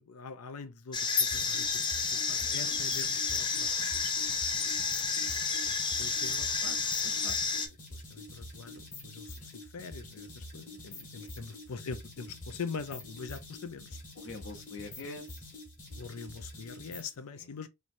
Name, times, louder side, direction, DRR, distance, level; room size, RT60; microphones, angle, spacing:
voice 1, 0.0-4.1 5.7-6.8 7.0-14.0 16.0-17.7, left 5 dB, 80° left, 0.5 m, -44 dB
sound 1, 0.9-7.7, left 5 dB, 20° left, 0.4 m, -30 dB
sound 2, 1.3-17.2, left 1 dB, 35° left, 1.3 m, -46 dB
voice 2, 14.2-15.4 17.4-17.5, left 3 dB, 55° left, 0.9 m, -45 dB
3.1 x 3.1 x 2.6 m
head